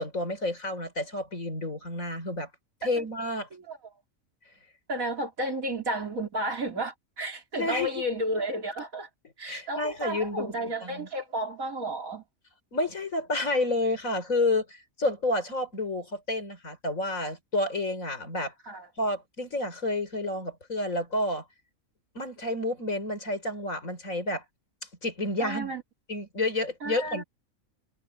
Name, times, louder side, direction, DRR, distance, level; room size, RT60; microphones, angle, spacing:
voice 1, 0.0-2.5 2.8-3.5 7.6-8.0 9.5-11.1 12.7-18.5 19.0-21.4 22.2-24.4 25.0-25.7 26.1-27.2, left 2 dB, 75° left, 5.4 m, -30 dB
voice 2, 4.9-9.1 9.4-12.2 18.7-18.9 25.4-25.8 26.8-27.2, right 1 dB, 90° right, 3.5 m, -32 dB
omnidirectional pair, 1.4 m